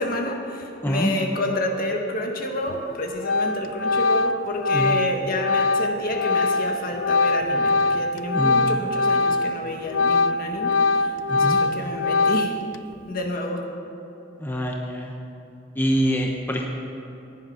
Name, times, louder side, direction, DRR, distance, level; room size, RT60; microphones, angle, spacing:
voice 1, 0.0-12.6 13.1-13.6, left 1 dB, 50° left, 2 dB, 1.6 m, -29 dB
Organ, 2.7-2.9 3.2-9.6 9.9-12.8, left 3 dB, 85° left, 0.4 m, -22 dB
voice 2, 8.3-8.7 11.3-11.6 14.4-15.1 15.8-16.7, equal, 10° left, 0 dB, 0.9 m, -25 dB
15.5 x 10.5 x 5.7 m, 2.9 s
head